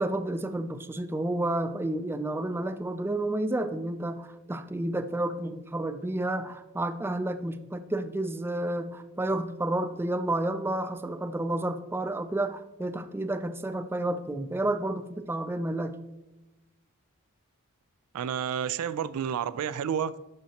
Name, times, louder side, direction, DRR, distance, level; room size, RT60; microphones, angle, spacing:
voice 1, 0.0-16.0, right 1 dB, 10° right, 0.3 m, -30 dB
voice 2, 18.1-20.2, right 8 dB, 90° right, 0.3 m, -30 dB
12.0 x 5.1 x 2.8 m
head